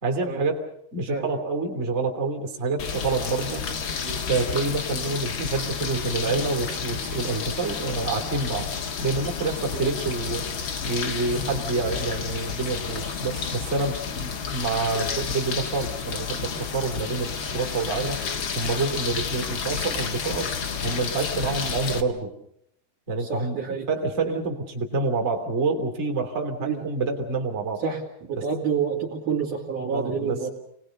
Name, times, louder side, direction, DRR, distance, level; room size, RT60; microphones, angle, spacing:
voice 1, 0.0-3.6 4.3-8.7 9.0-10.4 10.8-18.2 18.5-20.5 20.8-22.3 23.1-23.6 23.9-27.8 28.4-28.5 29.9-30.4, right 3 dB, 20° right, 2 dB, 2.5 m, -27 dB
sound 1, 2.8-22.0, left 6 dB, 70° left, 1.1 m, -31 dB
voice 2, 23.2-23.9 26.6-26.8 27.8-30.5, right 6 dB, 50° right, -4 dB, 3.7 m, -29 dB
29.0 x 19.5 x 6.6 m, 0.75 s
omnidirectional pair, 5.0 m